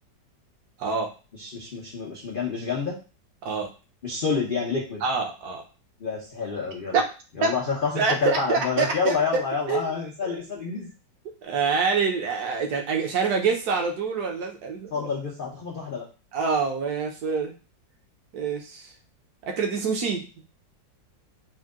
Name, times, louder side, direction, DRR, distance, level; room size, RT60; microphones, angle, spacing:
voice 1, 0.8-1.1 3.4-3.7 5.0-5.6 6.9-7.0 7.4-7.5 7.9-9.4 9.7-10.4 11.4-15.1 16.3-17.5 18.3-18.9 19.4-20.2, right 5 dB, 65° right, 2 dB, 1.2 m, -26 dB
voice 2, 1.4-3.0 4.0-5.0 6.0-7.0 7.4-10.9 14.9-16.0, left 5 dB, 80° left, -2 dB, 0.4 m, -28 dB
4.5 x 2.2 x 3.6 m, 0.33 s
omnidirectional pair, 2.0 m